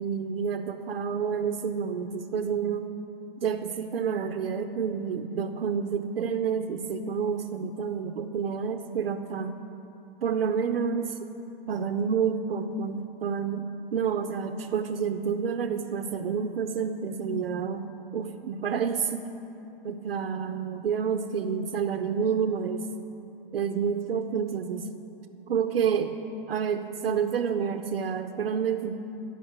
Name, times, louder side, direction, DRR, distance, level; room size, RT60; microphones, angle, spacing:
voice 1, 0.0-2.9 3.4-9.6 10.2-11.2 11.7-19.3 19.8-22.8 23.5-24.9 25.5-26.1 26.5-29.0, right 6 dB, 75° right, 7 dB, 0.6 m, -29 dB
9.6 x 5.5 x 8.0 m, 2.9 s
hypercardioid pair, 125°, 29 cm